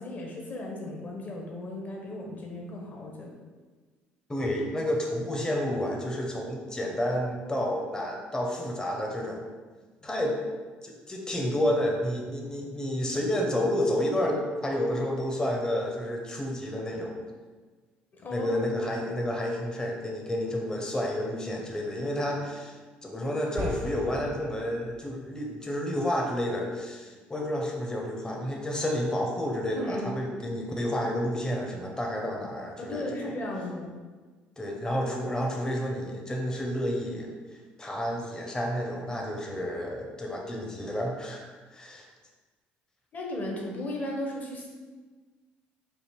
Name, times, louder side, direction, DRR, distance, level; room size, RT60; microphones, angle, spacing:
voice 1, 0.0-3.3 18.1-18.5 29.8-30.3 32.8-34.0 43.1-44.7, left 1 dB, 40° left, -1 dB, 1.0 m, -36 dB
voice 2, 4.3-9.4 10.0-10.4 10.8-17.2 18.3-33.1 34.6-41.5 41.7-42.1, left 1 dB, 15° left, -1 dB, 0.7 m, -30 dB
sound 1, 23.6-25.2, left 1 dB, 70° right, 0.7 m, -39 dB
3.4 x 2.5 x 4.4 m, 1.4 s
supercardioid pair, 70°, 4 cm